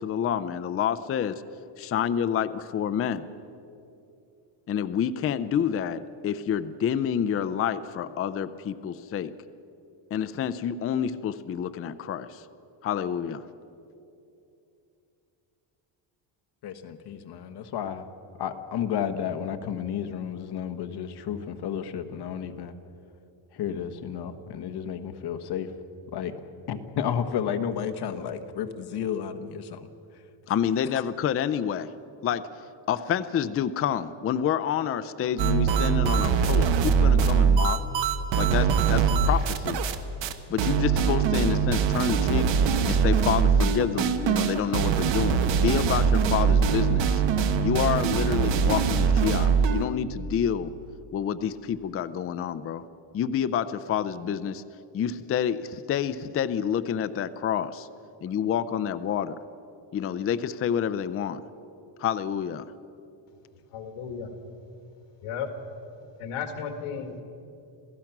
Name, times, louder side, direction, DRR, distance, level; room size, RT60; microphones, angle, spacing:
voice 1, 0.0-1.3 1.8-3.3 4.7-9.3 10.1-12.4 12.8-13.4 30.5-31.9 32.2-32.5 32.9-37.8 38.4-39.8 40.5-42.5 42.8-47.2 47.6-50.7 51.1-52.8 53.1-54.6 54.9-57.9 58.2-59.4 59.9-61.4 62.0-62.7, left 8 dB, 30° left, 12 dB, 0.5 m, -28 dB
voice 2, 16.6-18.1 18.4-22.7 23.5-25.7 26.1-26.3 26.7-29.9, left 8 dB, 50° left, 8 dB, 1.3 m, -32 dB
sound 1, 35.4-40.0 40.2-40.3 40.6-49.9, right 6 dB, 60° right, 1.3 m, -22 dB
voice 3, 63.7-64.4 65.2-65.5 66.2-67.2, left 6 dB, 80° left, 6 dB, 2.0 m, -34 dB
27.5 x 16.0 x 6.0 m, 2.7 s
cardioid pair, 155°, 50 cm